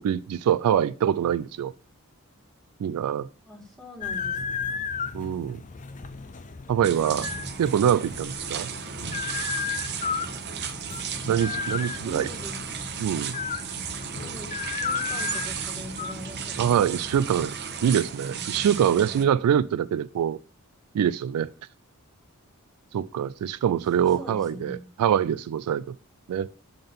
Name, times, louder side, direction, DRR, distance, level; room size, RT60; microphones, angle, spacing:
voice 1, 0.0-1.7 2.8-3.3 5.1-5.6 6.7-7.3 7.6-8.7 11.3-12.3 13.0-13.3 16.6-17.6 17.8-20.4 20.9-21.5 22.9-25.9 26.3-26.5, right 9 dB, 80° right, 0.3 m, -24 dB
voice 2, 3.5-4.8 11.0-11.1 11.4-11.7 11.9-12.6 14.2-16.9 23.9-24.8, equal, ahead, 1.8 m, -43 dB
sound 1, 4.0-17.5, left 6 dB, 35° left, 0.5 m, -34 dB
sound 2, 6.8-19.2, right 7 dB, 50° right, 0.8 m, -35 dB
7.0 x 3.9 x 5.2 m
head